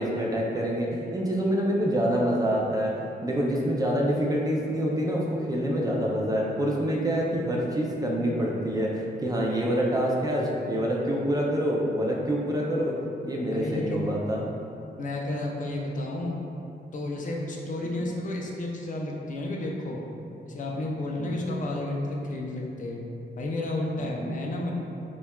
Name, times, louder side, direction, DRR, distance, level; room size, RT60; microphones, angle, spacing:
voice 1, 0.0-13.0 13.2-14.4 18.0-18.1 21.2-21.4 24.0-24.2, equal, 20° right, -3 dB, 0.3 m, -26 dB
voice 2, 13.5-14.1 15.0-16.4 16.9-20.0 20.4-23.0 23.4-24.7, left 2 dB, 45° left, -1 dB, 0.4 m, -31 dB
6.9 x 2.3 x 2.2 m, 2.7 s
wide cardioid pair, 180°, 18 cm